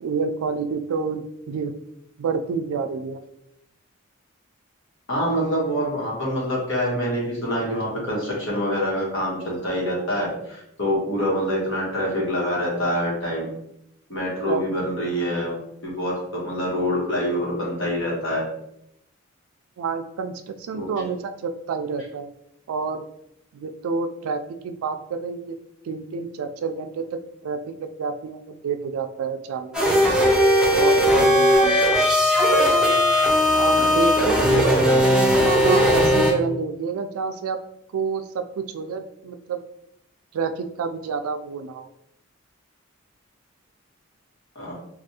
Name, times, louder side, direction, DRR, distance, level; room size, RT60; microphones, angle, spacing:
voice 1, 0.0-1.7 2.2-3.2 14.4-14.6 19.8-22.3 22.7-23.1 23.5-25.6 25.8-27.0 27.4-29.8 30.7-31.9 33.5-34.1 34.5-34.7 35.6-37.6 37.9-39.6 40.3-41.9, right 5 dB, 85° right, 9 dB, 0.3 m, -28 dB
voice 2, 5.1-13.5 14.1-15.5 16.0-18.4 20.7-20.8 33.7-33.9 34.2-34.6 44.5-44.7, equal, 60° left, -4 dB, 1.2 m, -25 dB
sound 1, 29.7-36.3, equal, 5° right, 0.5 m, -18 dB
3.3 x 2.3 x 2.8 m, 0.78 s
head